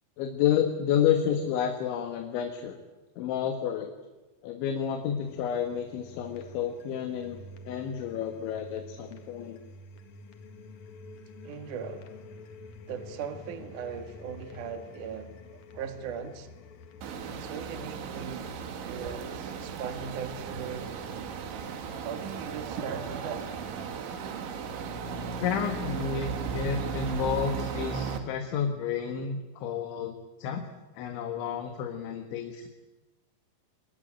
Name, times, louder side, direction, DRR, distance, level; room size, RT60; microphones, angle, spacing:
voice 1, 0.2-2.8 3.2-3.9 4.4-9.6 25.4-32.7, left 8 dB, 75° left, 3.9 m, -30 dB
sound 1, 5.2-23.9, left 2 dB, 50° left, 2.4 m, -49 dB
voice 2, 11.4-12.1 12.9-16.5 17.3-18.5 18.8-20.9 22.0-23.6, right 7 dB, 50° right, 2.9 m, -39 dB
sound 2, 17.0-28.2, right 6 dB, 75° right, 4.4 m, -36 dB
27.5 x 23.5 x 8.9 m
omnidirectional pair, 5.5 m